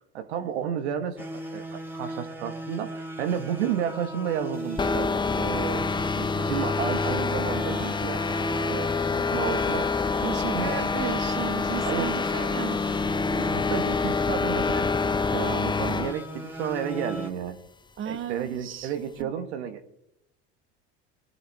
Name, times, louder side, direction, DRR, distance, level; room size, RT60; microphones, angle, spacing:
voice 1, 0.1-1.2 1.5-5.9 6.1-8.2 8.7-9.8 10.4-10.8 11.8-12.1 13.4-17.6 18.1-20.0, right 8 dB, 85° right, 7 dB, 1.6 m, -32 dB
sound 1, 1.2-17.3, right 1 dB, 5° right, 2.5 m, -36 dB
sound 2, 4.8-16.2, left 4 dB, 15° left, 0.6 m, -27 dB
voice 2, 10.2-12.8 18.0-18.9 19.2-19.3, right 9 dB, 40° right, 12 dB, 1.0 m, -34 dB
22.5 x 13.0 x 3.6 m, 0.77 s
hypercardioid pair, 80°, 32 cm